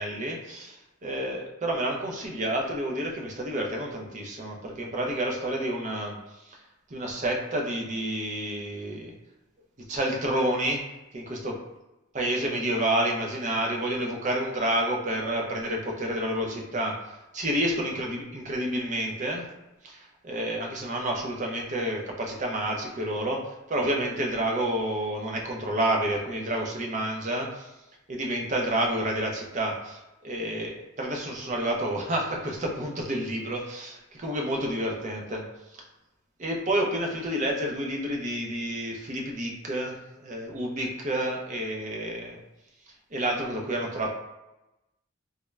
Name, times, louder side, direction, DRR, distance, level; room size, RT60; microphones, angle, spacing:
voice 1, 0.0-0.7 1.0-6.2 6.4-6.6 6.9-9.1 9.9-10.8 11.1-11.6 12.1-19.5 19.8-27.7 28.1-35.4 35.7-35.8 36.4-42.4 43.1-44.2, right 1 dB, 35° right, 0 dB, 0.5 m, -29 dB
3.5 x 2.2 x 3.1 m, 0.99 s
head